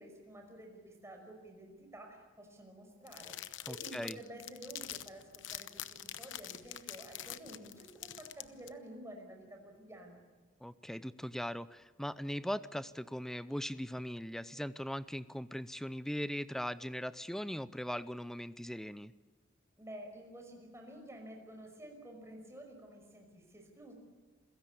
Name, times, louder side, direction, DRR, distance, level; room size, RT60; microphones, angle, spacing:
voice 1, 0.0-10.2 19.8-23.9, right 1 dB, 15° right, 3 dB, 5.5 m, -51 dB
sound 1, 3.1-8.7, left 12 dB, 70° left, 0.9 m, -45 dB
voice 2, 3.7-4.2 10.6-19.1, equal, ahead, 15 dB, 0.6 m, -39 dB
27.5 x 16.5 x 8.6 m, 1.4 s
head